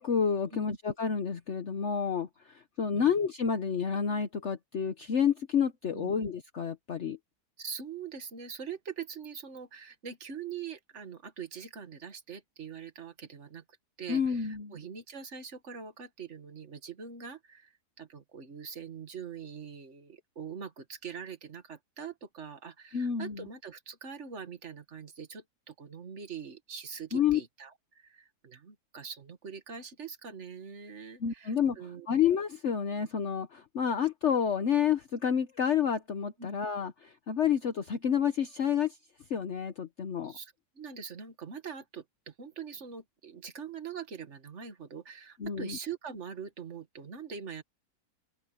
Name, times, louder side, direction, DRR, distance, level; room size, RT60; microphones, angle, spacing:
voice 1, 0.0-7.2 14.1-14.7 22.9-23.5 27.1-27.4 31.2-31.8 32.1-39.0 39.3-40.3 45.4-45.8, left 7 dB, 50° left, 1.2 m, -29 dB
voice 2, 7.6-13.6 14.0-32.1 36.4-36.5 40.2-47.6, right 6 dB, 45° right, 2.1 m, -43 dB
omnidirectional pair, 1.7 m